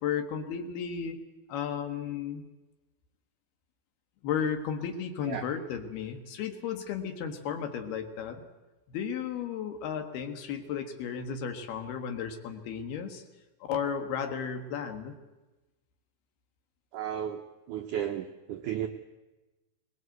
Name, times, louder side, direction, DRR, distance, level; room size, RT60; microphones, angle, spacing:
voice 1, 0.0-1.2 1.5-2.4 4.2-8.4 8.9-13.2 13.7-15.2, left 7 dB, 70° left, 6 dB, 3.4 m, -34 dB
voice 2, 16.9-17.4 17.7-18.9, right 10 dB, 80° right, 5 dB, 1.8 m, -34 dB
22.5 x 19.5 x 8.0 m, 1.1 s
omnidirectional pair, 4.8 m